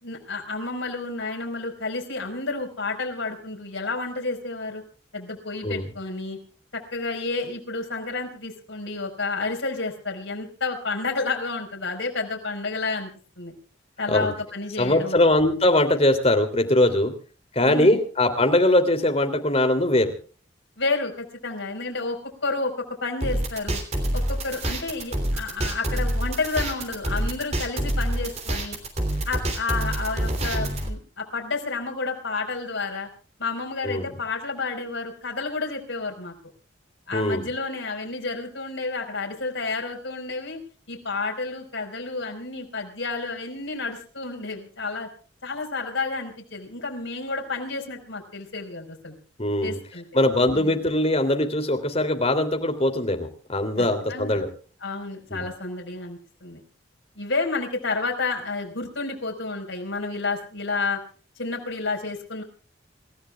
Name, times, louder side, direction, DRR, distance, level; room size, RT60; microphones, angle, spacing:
voice 1, 0.0-4.8 5.1-6.4 6.7-13.1 13.4-13.5 14.0-15.2 17.6-18.0 20.8-23.8 24.1-28.8 29.2-33.1 33.4-36.3 37.1-40.6 40.9-45.1 45.4-49.2 49.6-50.0 50.5-50.8 53.8-54.4 54.8-56.6 57.2-61.0 61.4-62.4, left 3 dB, 75° left, 1 dB, 4.8 m, -30 dB
voice 2, 14.8-17.1 17.5-20.1 33.8-34.1 37.1-37.5 49.4-49.8 50.1-54.5 55.3-55.5, left 1 dB, 30° left, 5 dB, 3.0 m, -21 dB
sound 1, 23.2-30.9, right 1 dB, 35° right, 3.1 m, -26 dB
27.5 x 15.0 x 2.4 m, 0.40 s
head